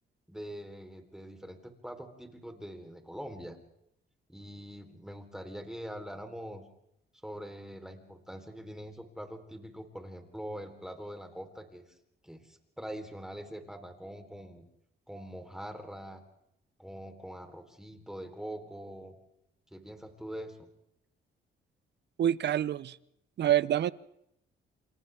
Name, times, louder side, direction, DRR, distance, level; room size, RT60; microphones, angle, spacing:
voice 1, 0.3-3.6 4.3-6.6 7.2-11.8 12.2-14.7 15.1-16.2 16.8-19.1 19.7-20.7, equal, 5° right, 5 dB, 3.7 m, -43 dB
voice 2, 22.2-23.0 23.4-23.9, right 11 dB, 60° right, 19 dB, 0.8 m, -26 dB
28.0 x 28.0 x 3.5 m, 0.80 s
cardioid pair, 90°, 20 cm